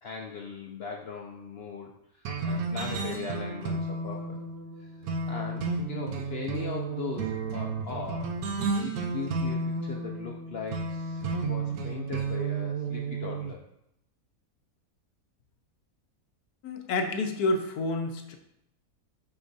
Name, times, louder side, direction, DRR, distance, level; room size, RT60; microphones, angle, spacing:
voice 1, 0.0-4.4 4.8-8.4 8.8-13.6, left 6 dB, 65° left, 1 dB, 0.6 m, -39 dB
sound 1, 2.2-13.5, right 4 dB, 80° right, 1.2 m, -32 dB
voice 2, 16.6-18.4, left 2 dB, 90° left, 6 dB, 1.2 m, -29 dB
6.0 x 6.0 x 2.6 m, 0.80 s
omnidirectional pair, 1.6 m